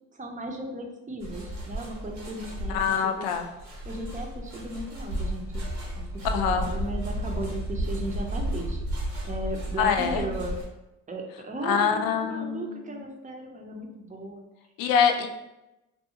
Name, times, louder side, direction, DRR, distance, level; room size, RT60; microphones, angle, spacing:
voice 1, 0.1-3.3 3.8-5.6 5.9-8.9 9.2-10.6 11.1-14.4, right 1 dB, 20° right, 2 dB, 0.6 m, -36 dB
sound 1, 1.2-10.6, right 1 dB, 80° right, 1.1 m, -33 dB
voice 2, 2.7-3.4 6.2-6.7 9.8-10.3 11.6-12.9 14.8-15.3, left 7 dB, 75° left, 5 dB, 0.5 m, -25 dB
2.6 x 2.3 x 2.8 m, 0.95 s
supercardioid pair, 55°, 35 cm